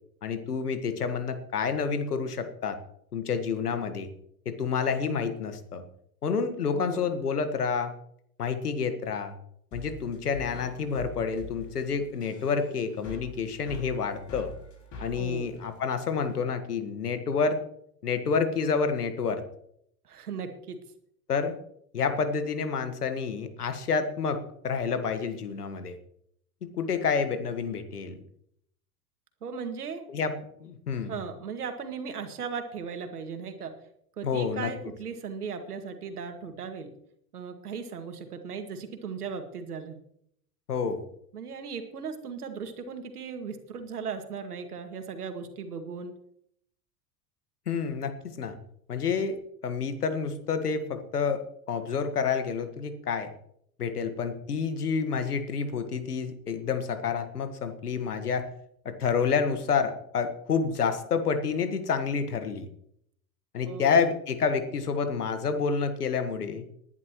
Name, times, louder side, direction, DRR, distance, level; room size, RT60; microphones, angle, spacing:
voice 1, 0.2-2.8 3.1-4.1 4.4-5.8 6.2-7.9 8.4-9.4 9.7-14.5 15.0-17.6 18.0-19.4 21.3-21.5 21.9-25.9 26.8-28.2 30.1-30.3 30.6-31.1 34.2-34.7 40.7-41.0 47.7-48.5 48.9-49.4 49.6-53.3 53.8-58.5 58.8-62.7 63.5-66.7, left 5 dB, 85° left, 9 dB, 1.7 m, -29 dB
voice 2, 6.7-7.1 15.2-15.5 20.0-20.8 29.4-30.0 31.0-33.8 34.2-36.9 37.3-40.0 41.3-46.1 63.7-64.1, right 5 dB, 80° right, 6 dB, 2.1 m, -37 dB
sound 1, 9.7-16.4, left 2 dB, 40° left, 5.8 m, -45 dB
20.0 x 10.5 x 3.1 m, 0.70 s
hypercardioid pair, 85°, 45 cm